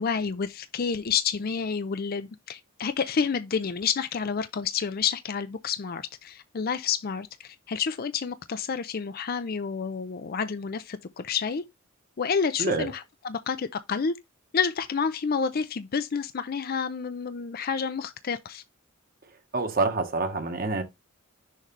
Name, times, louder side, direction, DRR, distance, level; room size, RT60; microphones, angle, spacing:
voice 1, 0.0-11.6 12.2-14.2 14.5-18.6, left 6 dB, 45° left, 0.5 m, -29 dB
voice 2, 19.5-20.8, right 3 dB, 45° right, 1.4 m, -26 dB
6.5 x 3.1 x 5.3 m
head